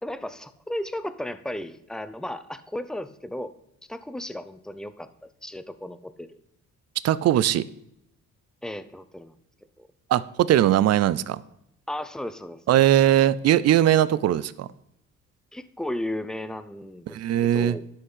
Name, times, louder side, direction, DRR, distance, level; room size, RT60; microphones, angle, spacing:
voice 1, 0.0-3.5 3.9-6.4 8.6-9.4 9.8-9.9 11.9-12.6 15.5-17.8, left 1 dB, ahead, 12 dB, 0.6 m, -35 dB
voice 2, 7.0-7.6 10.1-11.4 12.7-14.7 17.1-17.8, right 12 dB, 60° right, 18 dB, 0.5 m, -20 dB
11.5 x 5.7 x 5.5 m, 0.76 s
cardioid pair, 90°, 30 cm